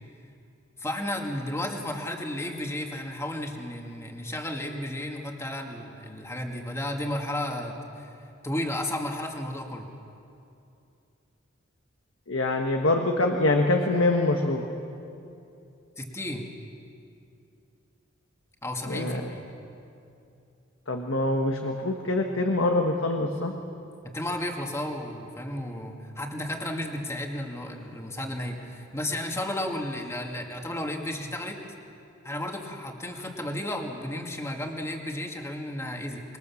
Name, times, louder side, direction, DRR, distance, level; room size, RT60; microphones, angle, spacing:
voice 1, 0.8-8.1 8.4-9.9 16.0-16.5 18.6-19.4 24.0-31.6 32.2-36.2, left 1 dB, 15° left, 1 dB, 2.1 m, -33 dB
voice 2, 12.3-14.7 18.9-19.3 20.9-23.5, left 2 dB, 70° left, 2 dB, 1.5 m, -25 dB
25.5 x 21.5 x 7.2 m, 2.6 s
head